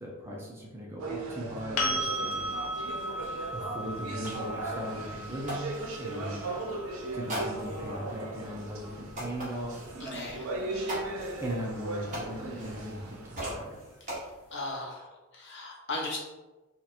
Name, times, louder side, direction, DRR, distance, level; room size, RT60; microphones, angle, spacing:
voice 1, 0.0-2.5 3.5-6.5 7.1-9.7 11.4-14.0, equal, 10° right, -3 dB, 0.6 m, -39 dB
sound 1, 1.0-13.6, right 2 dB, 80° right, 0.6 m, -38 dB
sound 2, 1.1-1.2 1.5-6.2 7.3-8.0 8.5-8.6 9.1-10.1 10.9-13.1 13.3-14.2, right 1 dB, 35° right, 1.2 m, -41 dB
sound 3, 1.8-9.6 12.4-12.5, equal, 85° left, 0.5 m, -36 dB
voice 2, 10.0-10.5 14.5-16.2, left 2 dB, 55° left, -3 dB, 0.9 m, -37 dB
2.9 x 2.4 x 4.1 m, 1.1 s
head